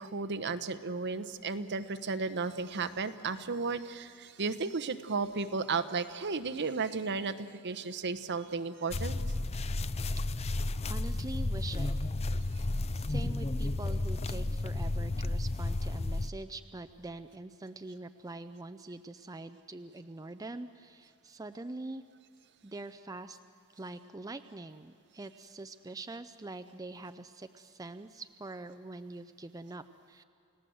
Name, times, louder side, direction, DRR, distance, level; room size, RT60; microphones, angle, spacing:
voice 1, 0.0-9.2, right 4 dB, 55° right, 11 dB, 1.0 m, -34 dB
sound 1, 8.9-16.3, left 2 dB, 30° left, 0.5 m, -32 dB
voice 2, 10.4-12.0 12.9-22.0 22.6-23.4 23.7-30.2, right 2 dB, 15° right, 9 dB, 0.5 m, -44 dB
29.5 x 17.5 x 7.8 m, 2.8 s
head